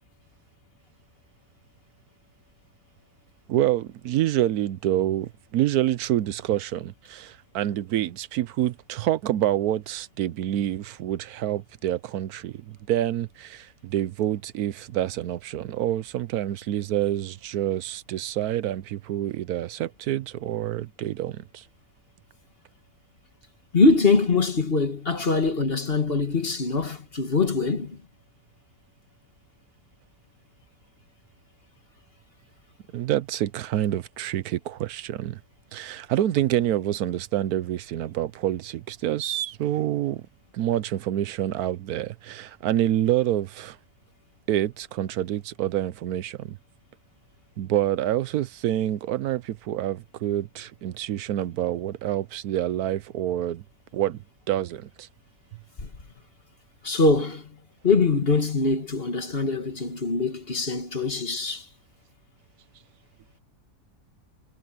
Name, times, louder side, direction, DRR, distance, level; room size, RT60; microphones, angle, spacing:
voice 1, 3.5-21.6 32.9-35.4 35.7-40.2 40.5-43.8 44.5-46.6 47.6-53.6 53.9-55.1, right 12 dB, 80° right, 1.2 m, -27 dB
voice 2, 23.7-28.0 55.8-55.9 56.8-57.5 57.8-61.7, left 3 dB, 40° left, 2.1 m, -23 dB
omnidirectional pair, 1.6 m